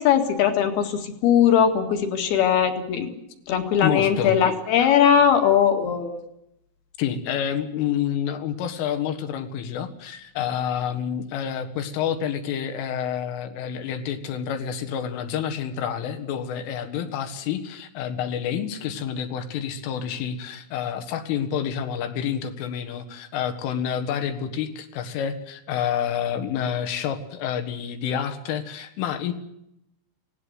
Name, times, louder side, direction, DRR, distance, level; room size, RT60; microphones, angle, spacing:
voice 1, 0.0-3.1 3.5-6.2, left 8 dB, 60° left, 6 dB, 3.4 m, -20 dB
voice 2, 3.8-4.4 7.0-29.3, left 8 dB, 75° left, 8 dB, 4.1 m, -28 dB
25.5 x 18.0 x 8.1 m, 0.83 s
omnidirectional pair, 6.0 m